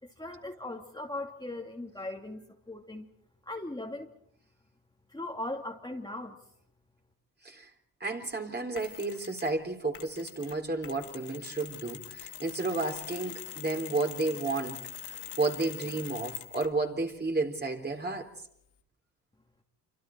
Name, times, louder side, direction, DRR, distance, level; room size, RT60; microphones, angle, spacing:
voice 1, 0.0-3.1 3.5-4.1 5.1-6.4, left 2 dB, 10° left, 2.7 m, -39 dB
voice 2, 8.0-18.3, right 3 dB, 25° right, 3.9 m, -32 dB
Mechanisms, 8.8-9.6 9.9-16.8, left 11 dB, 75° left, 2.0 m, -44 dB
27.5 x 25.5 x 4.6 m
supercardioid pair, 65°, 41 cm